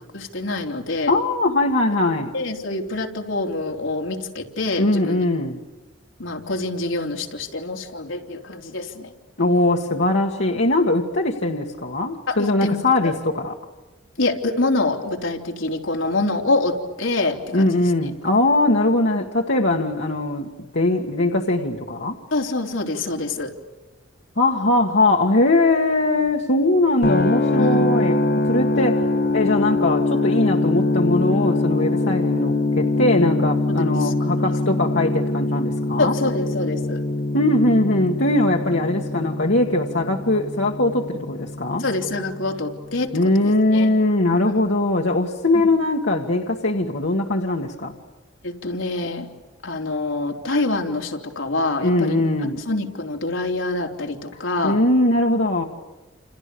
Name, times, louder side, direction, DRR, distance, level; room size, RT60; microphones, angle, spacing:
voice 1, 0.1-1.1 2.3-5.2 6.2-9.1 12.3-12.8 13.0-13.1 14.2-17.7 22.3-23.5 27.6-27.9 33.7-34.1 34.4-34.5 36.0-37.0 41.8-43.1 43.4-43.9 44.5-44.6 48.4-49.3 49.6-52.2 52.7-54.8, left 2 dB, 85° left, 2 dB, 3.5 m, -25 dB
voice 2, 1.1-2.3 4.8-5.6 9.4-13.6 17.5-22.2 24.4-29.0 29.3-36.2 37.3-41.8 43.1-48.0 51.8-52.6 54.6-55.6, left 2 dB, 70° left, -1 dB, 1.9 m, -21 dB
sound 1, 27.0-43.0, left 2 dB, 50° left, 1.3 m, -23 dB
29.5 x 29.0 x 7.0 m, 1.1 s
head